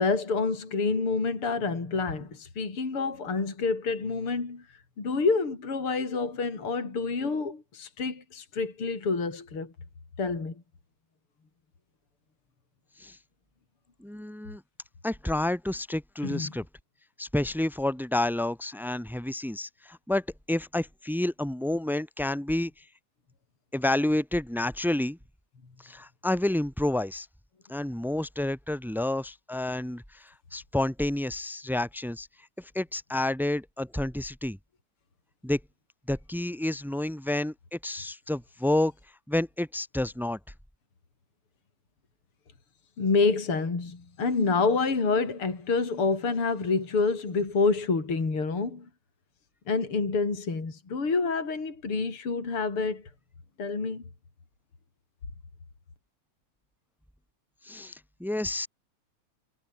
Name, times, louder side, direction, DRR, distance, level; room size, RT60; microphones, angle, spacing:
voice 1, 0.0-4.6 5.0-9.7 10.2-10.5 16.2-16.5 43.0-48.9 49.7-53.0 53.6-54.0, left 4 dB, 40° left, 5.6 m, -28 dB
voice 2, 14.0-14.6 15.0-16.6 17.2-22.7 23.7-25.2 25.8-27.3 27.7-32.3 32.6-34.6 35.4-35.6 36.1-38.9 39.3-40.4 57.6-58.7, left 1 dB, ahead, 1.0 m, -29 dB
omnidirectional pair, 3.7 m